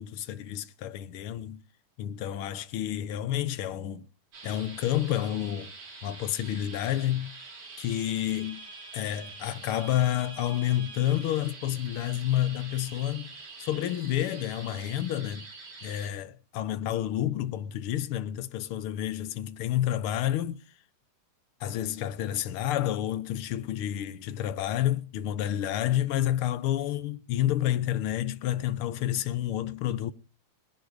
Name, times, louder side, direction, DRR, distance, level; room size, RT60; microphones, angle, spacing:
voice 1, 0.0-1.6 2.0-4.1 4.4-5.7 6.0-7.3 7.8-8.6 8.9-13.3 13.6-15.5 15.8-20.6 21.6-30.1, left 12 dB, 75° left, 1.2 m, -29 dB
sound 1, 4.3-16.1, right 4 dB, 50° right, 5.1 m, -45 dB
20.5 x 11.5 x 5.1 m
omnidirectional pair, 3.6 m